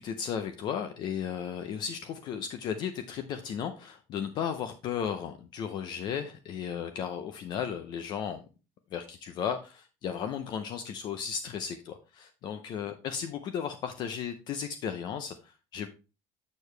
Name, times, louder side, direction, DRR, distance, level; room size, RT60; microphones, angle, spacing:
voice 1, 0.0-8.4 8.9-15.9, left 8 dB, 40° left, 8 dB, 0.6 m, -35 dB
6.8 x 6.5 x 3.2 m, 0.31 s
cardioid pair, 175°, 12 cm